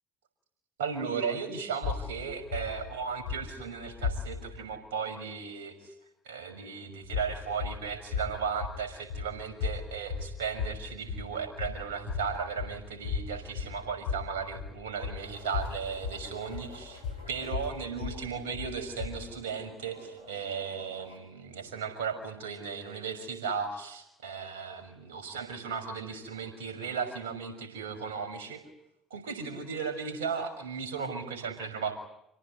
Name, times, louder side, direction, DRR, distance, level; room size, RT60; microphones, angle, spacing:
voice 1, 0.8-5.9 6.2-17.0 17.3-28.6 29.1-31.9, right 6 dB, 75° right, 7 dB, 6.3 m, -36 dB
sound 1, 1.8-4.6 7.0-19.4, left 5 dB, 70° left, 3.0 m, -37 dB
sound 2, 15.2-21.2, left 1 dB, 90° left, 7.5 m, -52 dB
28.5 x 18.0 x 9.7 m, 0.80 s
hypercardioid pair, 60°, 0 cm